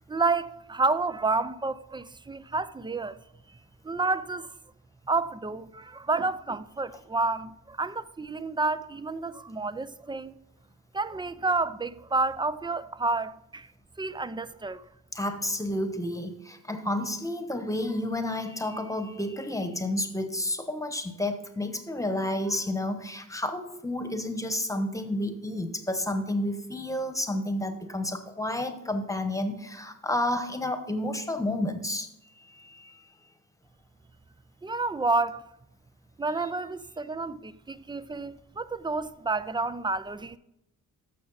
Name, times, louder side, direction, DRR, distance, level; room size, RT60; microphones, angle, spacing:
voice 1, 0.1-3.2 3.5-3.6 3.8-4.5 5.1-10.4 10.9-13.7 14.0-14.9 34.6-35.4 36.2-40.4, right 3 dB, 15° right, 0.4 m, -30 dB
voice 2, 15.1-32.1 32.4-33.0, left 1 dB, 10° left, 1.1 m, -31 dB
14.0 x 6.4 x 4.1 m
cardioid pair, 110°, 35 cm